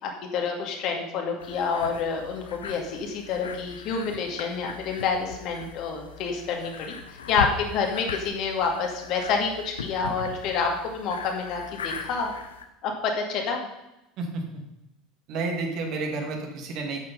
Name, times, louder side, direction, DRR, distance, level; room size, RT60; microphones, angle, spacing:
voice 1, 0.0-7.0 7.3-12.3 12.8-13.7, left 5 dB, 50° left, 2 dB, 2.1 m, -28 dB
sound 1, 1.4-12.7, left 6 dB, 75° left, 0.9 m, -39 dB
voice 2, 15.3-17.1, right 3 dB, 50° right, 2 dB, 2.2 m, -30 dB
9.2 x 8.1 x 5.4 m, 0.91 s
figure-of-eight pair, 70°, 0 cm